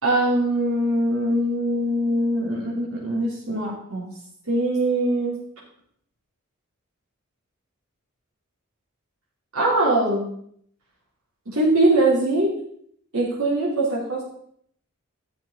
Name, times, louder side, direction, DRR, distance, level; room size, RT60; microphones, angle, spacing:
voice 1, 0.0-4.1 4.5-5.4 9.5-10.2 11.5-12.5 13.1-14.2, right 1 dB, 80° right, -5 dB, 3.5 m, -22 dB
12.0 x 7.3 x 4.0 m, 0.65 s
head